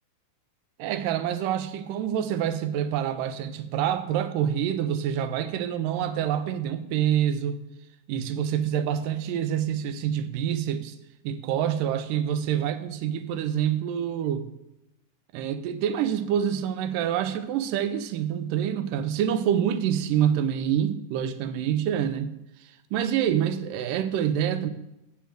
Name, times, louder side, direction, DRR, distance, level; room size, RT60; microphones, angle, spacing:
voice 1, 0.8-7.6 8.1-11.0 11.2-14.5 15.3-22.3 22.6-24.7, right 9 dB, 85° right, 10 dB, 2.3 m, -26 dB
7.7 x 6.9 x 7.6 m, 0.89 s
omnidirectional pair, 3.9 m